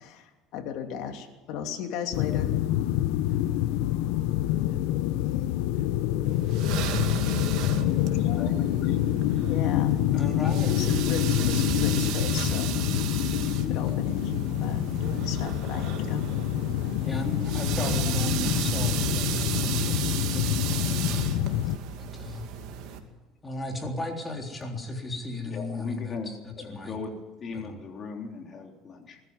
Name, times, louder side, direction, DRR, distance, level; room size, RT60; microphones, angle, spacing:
voice 1, 0.0-2.6 8.0-8.5 9.4-10.4 10.7-13.0 13.3-16.3, left 7 dB, 70° left, 4 dB, 2.8 m, -36 dB
sound 1, 2.1-21.8, left 13 dB, 90° left, 1.0 m, -26 dB
sound 2, 6.3-23.0, right 8 dB, 70° right, 2.4 m, -34 dB
voice 2, 10.1-10.7 17.0-22.4 23.4-27.0 27.5-27.8, left 2 dB, 15° left, 2 dB, 3.7 m, -36 dB
voice 3, 25.4-26.3 26.6-29.2, left 4 dB, 35° left, 2 dB, 3.7 m, -38 dB
20.5 x 14.0 x 9.8 m, 1.1 s
cardioid pair, 130°, 0 cm